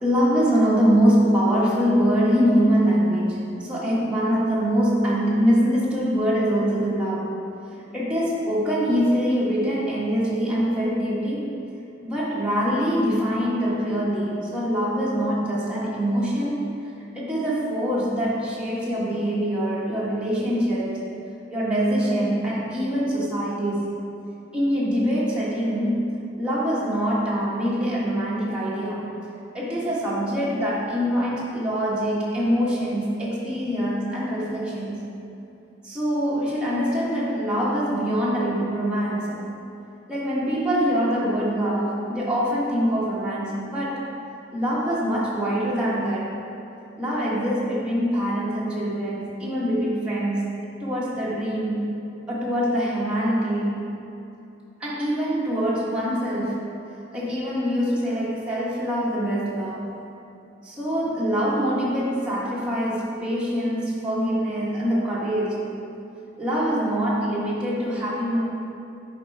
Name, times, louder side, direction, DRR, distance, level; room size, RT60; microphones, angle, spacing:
voice 1, 0.0-7.3 7.9-11.5 12.0-16.7 17.1-21.0 21.5-24.0 24.5-26.0 26.4-29.1 29.5-35.0 35.8-39.4 40.1-44.0 44.5-46.3 47.0-52.0 52.3-53.8 54.8-56.7 57.1-59.9 60.6-65.7 66.4-68.4, equal, 5° right, -8 dB, 1.3 m, -24 dB
10.5 x 3.8 x 4.5 m, 2.8 s
head